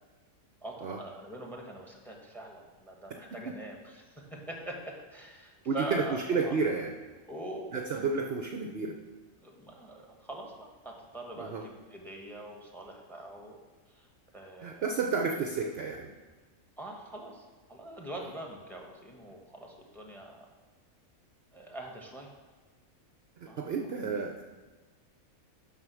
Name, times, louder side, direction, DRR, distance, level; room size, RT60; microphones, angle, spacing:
voice 1, 0.6-6.5 7.3-8.0 9.4-13.6 13.9-14.1 14.3-14.8 16.8-20.5 21.5-22.3 23.5-23.6, right 2 dB, ahead, 0 dB, 1.4 m, -43 dB
voice 2, 5.7-6.9 7.7-9.0 11.4-11.6 14.6-16.1 23.4-24.4, right 4 dB, 55° right, 3 dB, 0.8 m, -31 dB
9.7 x 5.8 x 6.2 m, 1.3 s
omnidirectional pair, 1.5 m